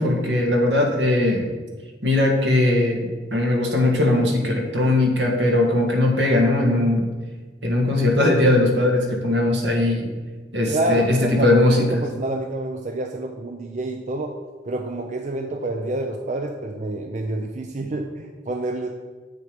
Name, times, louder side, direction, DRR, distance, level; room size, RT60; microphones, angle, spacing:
voice 1, 0.0-1.5 2.0-7.1 7.6-10.1 10.5-12.0, left 2 dB, 75° right, 1 dB, 1.7 m, -19 dB
voice 2, 10.6-14.4 14.6-18.9, right 2 dB, 40° right, 3 dB, 0.5 m, -28 dB
7.8 x 6.7 x 5.0 m, 1.4 s
head